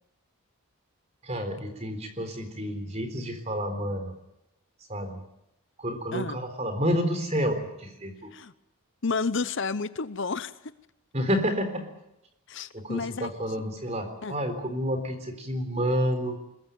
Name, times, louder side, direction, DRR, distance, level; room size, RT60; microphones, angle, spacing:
voice 1, 1.2-4.1 4.9-5.2 5.8-8.3 11.1-11.9 12.7-16.4, equal, 30° right, 8 dB, 3.9 m, -29 dB
voice 2, 9.0-10.5 12.5-13.3 14.2-14.4, left 4 dB, 55° left, 15 dB, 0.8 m, -30 dB
22.0 x 21.5 x 9.2 m, 0.86 s
head